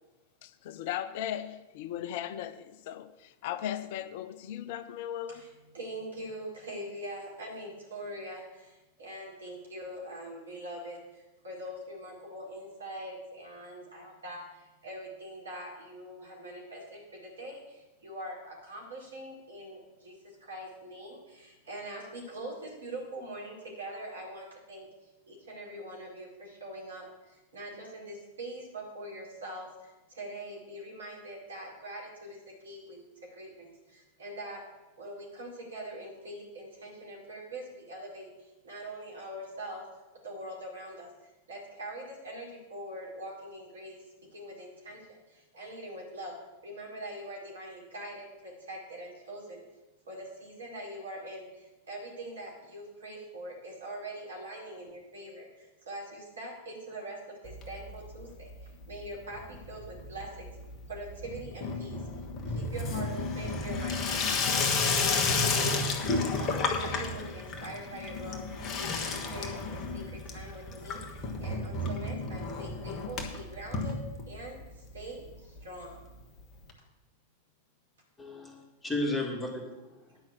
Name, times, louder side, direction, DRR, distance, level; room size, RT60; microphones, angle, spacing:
voice 1, 0.4-5.4, left 11 dB, 50° left, 0.6 m, -37 dB
voice 2, 5.7-24.9 25.3-34.7 35.0-39.8 40.2-44.0 44.3-46.3 46.6-49.6 50.1-60.5 60.9-62.0 62.5-74.0 74.3-76.0, right 1 dB, 70° right, 4.8 m, -43 dB
Water tap faucet / Sink (filling or washing), 57.4-58.2 58.5-59.1 59.3-74.6 75.0-75.1 75.2-75.3 75.6-75.7 76.7-76.8, left 3 dB, 30° left, 1.5 m, -32 dB
voice 3, 78.2-80.2, left 2 dB, 10° left, 2.5 m, -34 dB
10.5 x 6.0 x 7.5 m
figure-of-eight pair, 90°, 0 cm